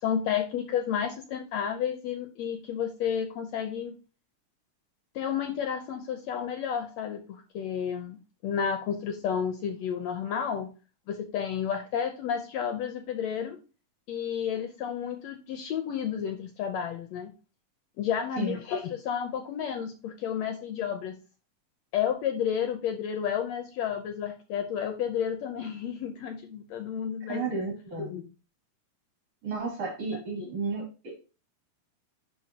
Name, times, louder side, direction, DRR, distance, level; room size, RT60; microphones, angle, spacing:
voice 1, 0.0-3.9 5.2-10.7 11.1-13.6 14.1-17.3 18.0-21.2 21.9-27.4 28.0-28.3 30.4-30.5, left 8 dB, 70° left, 6 dB, 1.8 m, -31 dB
voice 2, 27.3-28.2 29.4-31.3, right 4 dB, 50° right, -1 dB, 4.4 m, -33 dB
11.0 x 4.7 x 2.8 m, 0.33 s
omnidirectional pair, 3.6 m